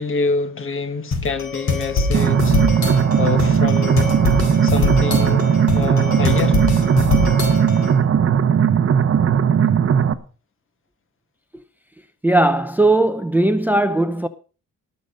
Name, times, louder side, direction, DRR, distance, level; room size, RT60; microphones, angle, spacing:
voice 1, 0.0-4.1 4.6-6.6, left 4 dB, 45° left, 1.4 m, -26 dB
sound 1, 1.1-8.0, left 3 dB, 65° left, 4.3 m, -23 dB
sound 2, 2.1-10.1, right 8 dB, 50° right, 0.9 m, -17 dB
voice 2, 12.2-14.3, right 2 dB, 5° right, 0.6 m, -17 dB
18.0 x 6.8 x 5.3 m
wide cardioid pair, 155°, 30 cm